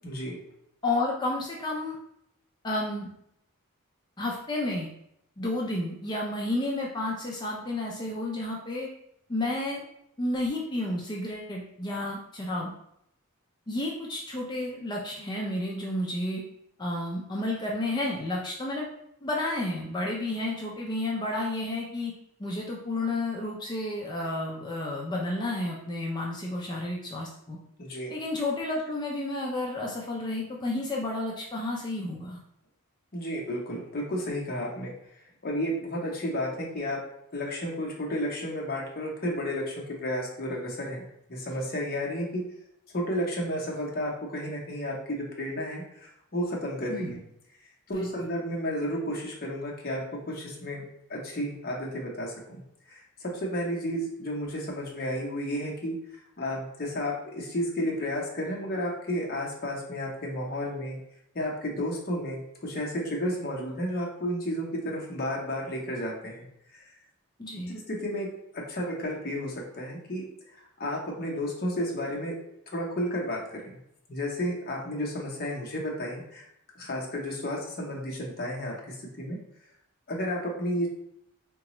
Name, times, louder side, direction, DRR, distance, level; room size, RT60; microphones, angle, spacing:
voice 1, 0.0-0.4 27.8-28.1 33.1-34.9 35.4-37.0 37.3-42.4 42.9-47.2 47.9-50.8 51.1-52.6 52.9-56.0 56.4-61.0 61.3-66.5 66.7-66.8 67.9-70.3 70.8-72.3 72.7-73.8 74.1-76.4 76.8-79.4 80.1-80.9, equal, 45° left, -2 dB, 0.8 m, -32 dB
voice 2, 0.8-2.0 2.6-3.1 4.2-4.9 5.4-8.9 9.3-9.8 10.2-12.7 13.7-16.4 16.8-18.9 19.2-22.1 22.4-27.6 28.1-32.4 46.9-47.2 47.9-48.1 67.4-67.7, left 2 dB, 20° left, -2 dB, 0.4 m, -31 dB
3.8 x 2.3 x 2.9 m, 0.75 s
head